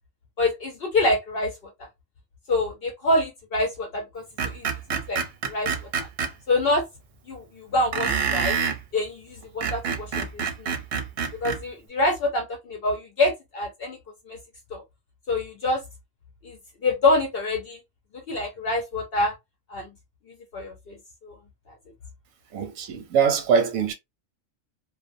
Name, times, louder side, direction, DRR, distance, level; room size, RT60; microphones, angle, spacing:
voice 1, 0.4-1.5 2.5-5.7 6.5-6.9 7.3-8.6 8.9-10.3 10.6-10.7 11.4-14.0 14.3-14.4 14.7-14.8 15.3-15.8 16.4-16.6 16.8-17.8 18.1-19.3 19.7-19.9 20.5-21.0 21.2-21.3, left 2 dB, 60° left, 0.7 m, -26 dB
Screech, 4.4-6.3 7.9-8.8 9.4-11.6, right 6 dB, 55° right, 0.7 m, -27 dB
voice 2, 22.5-23.9, right 6 dB, 90° right, 1.1 m, -22 dB
2.5 x 2.1 x 2.5 m
omnidirectional pair, 1.4 m